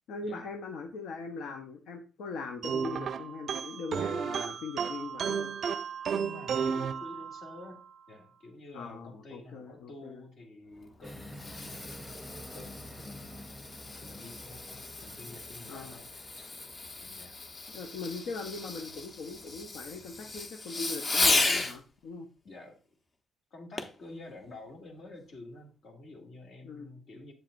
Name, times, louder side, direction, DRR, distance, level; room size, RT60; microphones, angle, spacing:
voice 1, 0.1-5.5 8.7-10.2 15.7-16.0 17.7-22.3 26.6-26.9, left 4 dB, 80° left, 3 dB, 0.8 m, -40 dB
sound 1, 2.6-7.7, right 6 dB, 60° right, 0.4 m, -33 dB
voice 2, 6.0-7.8 8.1-12.2 12.5-16.2 17.0-17.4 22.4-22.8 23.5-27.3, left 2 dB, 60° left, 2 dB, 2.2 m, -49 dB
Fireworks, 10.8-21.8 23.8-24.0 24.6-24.7, left 3 dB, 35° left, 0.9 m, -34 dB
sound 2, 11.0-18.0, equal, 5° right, 0.8 m, -49 dB
8.0 x 7.4 x 2.5 m, 0.35 s
cardioid pair, 90°, 0 cm